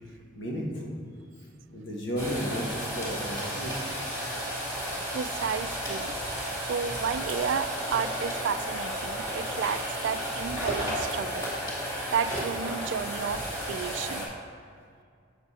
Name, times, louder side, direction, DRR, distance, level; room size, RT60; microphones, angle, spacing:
voice 1, 0.3-0.9 1.7-4.0, equal, 70° left, -3 dB, 1.7 m, -33 dB
sound 1, 2.2-14.3, equal, 20° left, 2.1 m, -33 dB
voice 2, 5.1-6.1 6.6-11.5 12.1-14.3, right 7 dB, 70° right, 13 dB, 0.3 m, -32 dB
7.3 x 7.0 x 4.3 m, 2.2 s
head